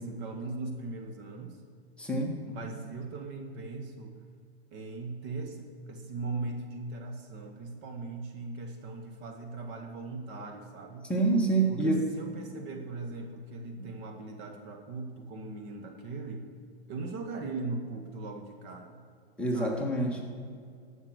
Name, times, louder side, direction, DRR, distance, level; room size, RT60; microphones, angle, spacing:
voice 1, 0.0-1.6 2.4-4.2 4.7-11.1 11.7-16.5 16.9-19.0 19.5-19.9, right 3 dB, 35° right, 5 dB, 1.3 m, -39 dB
voice 2, 2.0-2.4 11.1-12.0 19.4-20.2, right 2 dB, 5° left, -2 dB, 1.5 m, -27 dB
13.5 x 5.9 x 7.8 m, 2.2 s
hypercardioid pair, 130°, 32 cm